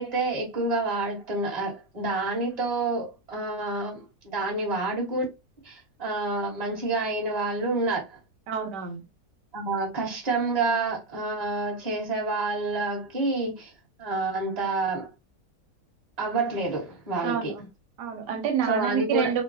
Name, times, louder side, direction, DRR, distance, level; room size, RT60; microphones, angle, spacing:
voice 1, 0.0-5.2 5.6-8.2 9.5-13.7 14.0-15.1 16.2-17.5 18.7-19.3, right 3 dB, 25° right, 1.3 m, -28 dB
voice 2, 8.5-9.0 17.2-17.7 18.0-19.4, right 7 dB, 85° right, 1.3 m, -28 dB
3.7 x 2.2 x 2.7 m
omnidirectional pair, 1.8 m